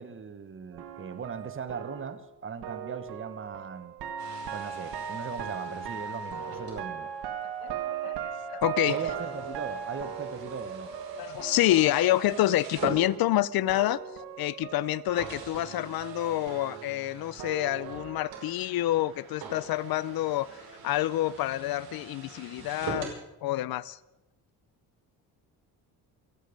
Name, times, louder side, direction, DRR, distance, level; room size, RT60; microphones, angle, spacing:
voice 1, 0.0-3.9 4.5-7.1 8.9-10.9, right 5 dB, 30° right, 11 dB, 1.2 m, -39 dB
sound 1, 0.7-13.4 13.7-18.5, right 8 dB, 80° right, 1.7 m, -39 dB
sound 2, 4.2-13.7 14.4-14.5 15.2-23.2, right 4 dB, 65° right, 5.7 m, -43 dB
voice 2, 7.6-8.2 8.5-9.0 11.2-14.0 14.4-20.5 20.8-23.1 23.4-24.0, left 15 dB, 65° left, 21 dB, 0.5 m, -27 dB
28.0 x 9.3 x 5.2 m, 0.95 s
cardioid pair, 115°, 39 cm